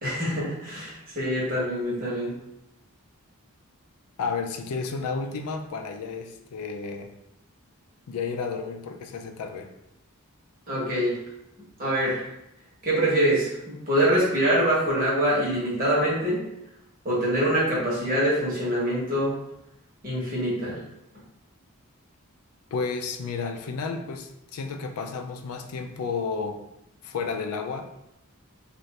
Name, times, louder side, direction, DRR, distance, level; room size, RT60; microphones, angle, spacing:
voice 1, 0.0-2.3 10.7-11.1 11.8-12.3 12.8-16.4 17.0-19.3 20.0-20.8, right 1 dB, 40° right, -6 dB, 1.1 m, -24 dB
voice 2, 4.2-7.1 8.1-9.7 22.7-26.6 27.0-28.0, left 5 dB, 80° left, 6 dB, 0.4 m, -32 dB
2.7 x 2.5 x 3.1 m, 0.82 s
head